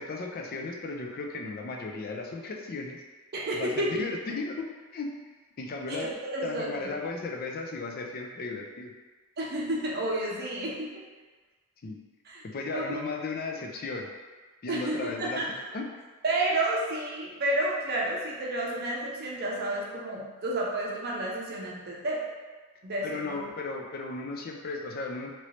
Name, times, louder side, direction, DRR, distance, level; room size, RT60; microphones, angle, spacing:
voice 1, 0.0-3.0 3.5-4.7 4.9-5.1 5.6-6.1 6.4-8.9 11.8-12.0 12.4-14.1 14.6-15.9 23.0-25.3, left 3 dB, 40° left, 1 dB, 0.4 m, -35 dB
voice 2, 3.3-4.0 5.9-6.9 9.4-10.9 12.3-12.4 12.7-13.0 14.7-15.5 16.2-22.2 22.8-23.4, right 1 dB, 45° right, -3 dB, 0.6 m, -31 dB
3.0 x 2.7 x 3.1 m, 1.3 s
head